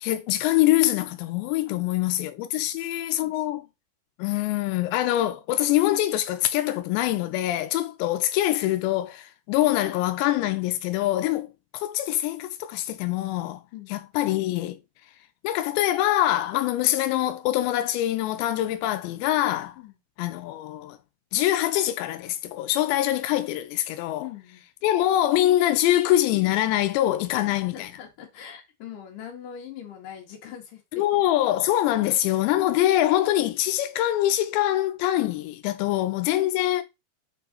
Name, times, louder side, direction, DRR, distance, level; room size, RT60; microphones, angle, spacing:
voice 1, 0.0-3.7 4.2-13.6 13.9-14.8 15.4-19.8 20.2-21.0 21.3-24.3 24.8-27.9 30.9-36.8, left 14 dB, 85° left, 2.8 m, -24 dB
voice 2, 2.6-3.7 13.7-13.9 19.8-20.0 24.2-24.7 27.5-31.0, left 9 dB, 60° left, 2.9 m, -43 dB
6.2 x 4.6 x 3.9 m
omnidirectional pair, 5.0 m